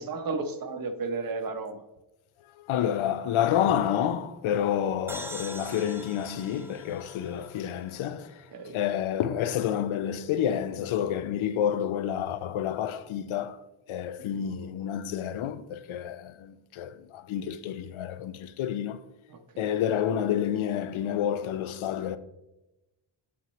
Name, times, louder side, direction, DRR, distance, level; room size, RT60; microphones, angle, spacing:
voice 1, 0.0-1.8 8.5-8.7 14.2-14.4 19.3-19.7, right 4 dB, 45° right, 0.7 m, -34 dB
voice 2, 2.4-13.6 13.9-19.1 19.6-22.2, left 9 dB, 80° left, 0.6 m, -29 dB
sound 1, 5.1-8.6, right 1 dB, 5° right, 0.3 m, -44 dB
8.4 x 5.8 x 3.1 m
wide cardioid pair, 150°, 48 cm